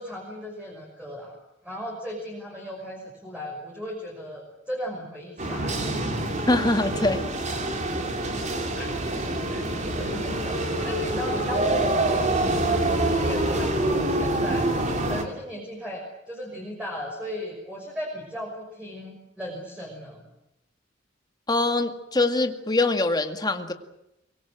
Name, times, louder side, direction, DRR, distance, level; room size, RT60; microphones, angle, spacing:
voice 1, 0.0-1.4 1.6-6.1 8.7-20.2, equal, 5° right, -2 dB, 6.0 m, -37 dB
sound 1, 5.4-15.2, right 1 dB, 40° right, 3.4 m, -26 dB
voice 2, 6.5-7.2 21.5-23.7, left 2 dB, 20° left, 6 dB, 2.0 m, -23 dB
24.5 x 23.0 x 7.8 m, 0.88 s
head